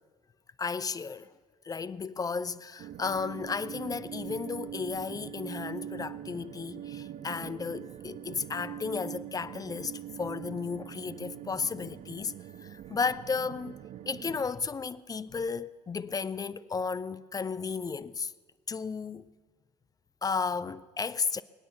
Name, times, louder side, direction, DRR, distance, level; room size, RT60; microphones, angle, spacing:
voice 1, 0.6-1.3 1.6-12.3 12.6-13.8 14.1-18.3 18.7-19.3 20.2-21.4, left 5 dB, 20° left, 0.5 m, -34 dB
sound 1, 2.8-14.4, right 11 dB, 35° right, 0.5 m, -43 dB
21.5 x 9.4 x 7.0 m
figure-of-eight pair, 60°, 21 cm